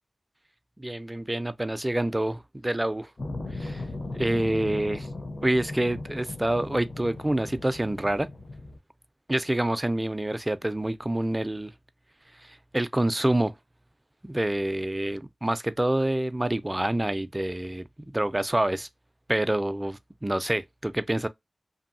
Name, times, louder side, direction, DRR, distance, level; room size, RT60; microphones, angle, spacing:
voice 1, 0.8-3.1 3.5-3.8 4.1-5.1 5.4-8.3 9.3-11.7 12.4-13.5 14.2-17.9 18.1-18.9 19.3-21.3, right 1 dB, 25° right, 0.3 m, -27 dB
sound 1, 3.2-8.8, left 2 dB, 65° left, 0.6 m, -37 dB
2.7 x 2.6 x 2.5 m
cardioid pair, 40°, 0 cm